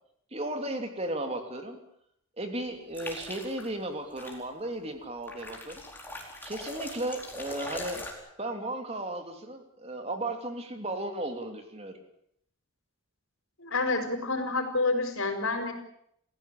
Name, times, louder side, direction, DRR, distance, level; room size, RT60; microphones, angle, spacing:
voice 1, 0.3-1.8 2.4-5.8 6.4-8.0 8.4-11.9, right 1 dB, 25° right, 5 dB, 3.1 m, -35 dB
sound 1, 2.9-3.7 4.2-4.4 5.3-8.1, left 1 dB, 10° left, 4.5 m, -41 dB
voice 2, 13.6-15.7, left 3 dB, 65° left, 7 dB, 5.1 m, -28 dB
30.0 x 16.0 x 8.6 m, 0.73 s
head